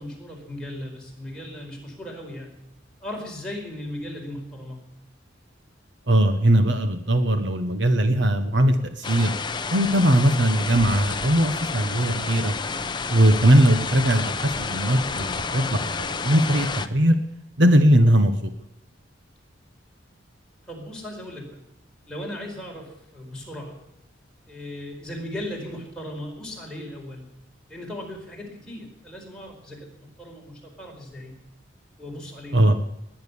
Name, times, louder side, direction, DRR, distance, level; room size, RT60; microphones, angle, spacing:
voice 1, 0.0-2.5 3.0-4.8 20.7-21.6 22.1-23.8 24.5-27.3 27.7-31.3 32.0-32.7, left 1 dB, 5° left, -2 dB, 4.7 m, -37 dB
voice 2, 6.1-9.3 9.7-12.5 13.1-17.2 17.6-18.5 32.5-32.8, right 1 dB, 60° right, 8 dB, 1.3 m, -20 dB
sound 1, 9.0-16.9, left 4 dB, 25° left, 0.7 m, -30 dB
19.5 x 10.5 x 7.1 m, 0.83 s
head